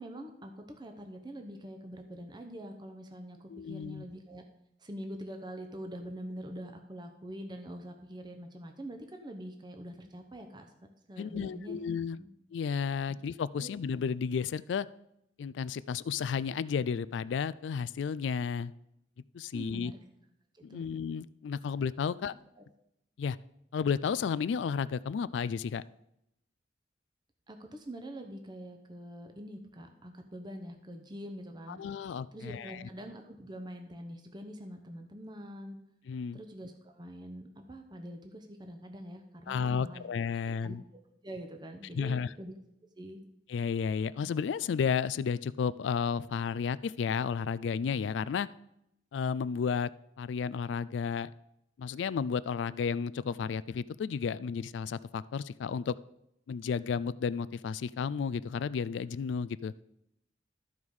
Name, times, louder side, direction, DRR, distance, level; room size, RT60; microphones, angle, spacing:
voice 1, 0.0-4.4 4.8-10.7 11.1-11.8 12.2-12.3 13.6-13.7 19.5-20.0 20.5-20.9 22.2-22.3 22.6-22.7 27.5-31.8 32.3-35.8 36.3-40.1 40.5-40.8 41.2-42.5 43.0-43.2, equal, 25° right, 4 dB, 0.8 m, -44 dB
voice 2, 3.5-4.0 11.2-12.2 12.5-14.9 15.4-18.7 19.3-19.9 20.6-22.3 23.2-23.4 23.7-25.8 31.7-32.8 36.1-36.4 39.5-40.8 41.9-42.3 43.5-48.5 49.1-49.9 50.2-51.3 51.8-55.9 56.5-59.7, left 6 dB, 80° left, 18 dB, 0.3 m, -32 dB
13.0 x 4.8 x 5.4 m, 0.81 s
head